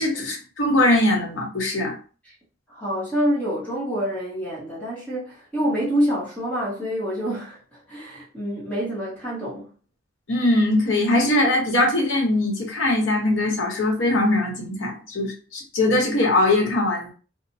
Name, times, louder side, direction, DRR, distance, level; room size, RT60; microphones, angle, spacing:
voice 1, 0.0-1.9 10.3-17.1, left 1 dB, 70° left, 0.9 m, -21 dB
voice 2, 2.7-9.7, equal, 10° left, 0.9 m, -27 dB
3.0 x 2.0 x 2.7 m
head